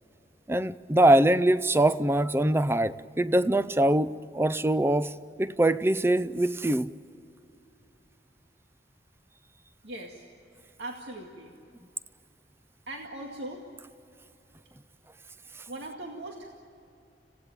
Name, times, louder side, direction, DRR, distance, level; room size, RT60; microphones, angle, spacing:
voice 1, 0.5-5.1 5.4-6.9, right 1 dB, 15° right, 0.5 m, -23 dB
voice 2, 9.8-10.3 10.8-11.5 12.9-13.6 15.7-16.6, right 1 dB, 80° right, 2.2 m, -40 dB
26.5 x 17.0 x 9.0 m
head